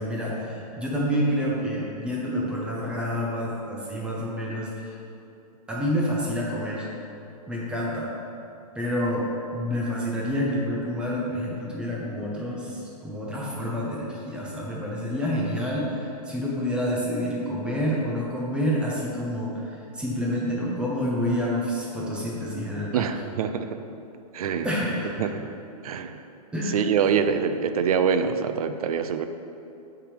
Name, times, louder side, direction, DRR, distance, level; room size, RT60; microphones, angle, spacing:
voice 1, 0.0-4.9 5.7-6.9 7.5-8.1 8.8-9.3 9.5-19.7 19.9-23.1 24.6-25.1 26.5-26.8, equal, 5° right, -5 dB, 0.6 m, -28 dB
voice 2, 22.9-23.8 24.3-24.7 25.2-25.5 25.8-26.2 26.7-29.3, right 7 dB, 65° right, 9 dB, 0.5 m, -25 dB
5.9 x 3.5 x 4.8 m, 2.7 s
hypercardioid pair, 155°, 20 cm